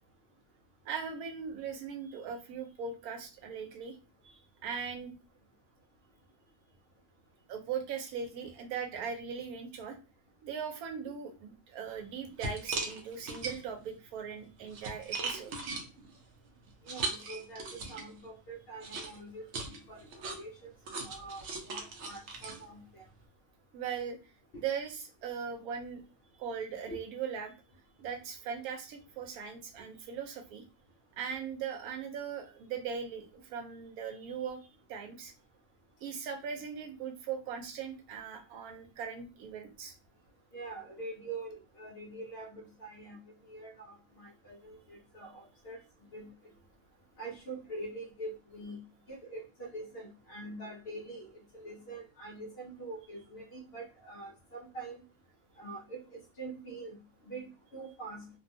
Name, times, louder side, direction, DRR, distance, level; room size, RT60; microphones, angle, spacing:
voice 1, 0.8-4.0 4.2-5.1 7.5-10.0 10.4-15.5 23.7-24.2 24.6-26.0 26.4-27.5 28.0-30.6 31.2-34.6 34.9-35.3 36.0-39.9, right 6 dB, 85° right, 5 dB, 1.1 m, -39 dB
sound 1, 11.9-12.0 12.4-13.9 14.4-18.2 18.8-23.2, right 3 dB, 65° right, 0.8 m, -39 dB
voice 2, 16.8-19.4 19.9-20.7 21.0-23.0 26.9-27.0 40.5-43.2 43.5-45.8 46.1-46.3 47.2-48.8 49.1-55.0 55.6-58.3, right 2 dB, 60° left, 0 dB, 0.6 m, -44 dB
2.6 x 2.2 x 2.6 m, 0.32 s
omnidirectional pair, 1.5 m